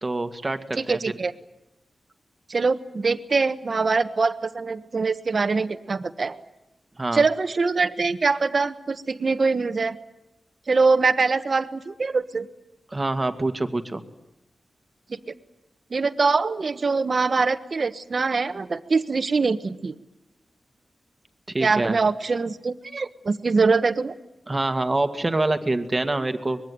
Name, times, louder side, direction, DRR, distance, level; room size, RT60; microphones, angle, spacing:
voice 1, 0.0-1.0 7.0-7.2 12.9-14.0 21.5-22.0 24.5-26.6, right 2 dB, 25° right, 8 dB, 2.0 m, -25 dB
voice 2, 0.8-1.3 2.5-6.4 7.1-10.0 10.7-12.5 15.1-15.3 15.9-19.9 21.6-24.1, right 4 dB, 50° right, 11 dB, 1.3 m, -23 dB
24.5 x 21.5 x 9.5 m, 0.91 s
wide cardioid pair, 105°, 0 cm